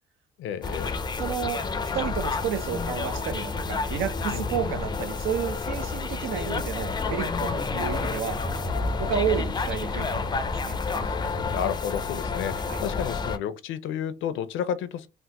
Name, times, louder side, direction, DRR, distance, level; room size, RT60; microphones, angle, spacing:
voice 1, 0.4-1.0 4.3-4.7 9.9-10.1 11.1-11.2 11.5-15.1, left 9 dB, 80° left, 0.5 m, -32 dB
sound 1, 0.6-13.4, left 4 dB, 20° left, 0.4 m, -29 dB
voice 2, 1.2-1.6 1.9-8.4 9.0-10.8 12.7-12.8, right 8 dB, 90° right, 0.7 m, -31 dB
sound 2, 7.5-11.6, equal, 30° right, 1.1 m, -46 dB
3.3 x 2.1 x 2.9 m
cardioid pair, 90°, 20 cm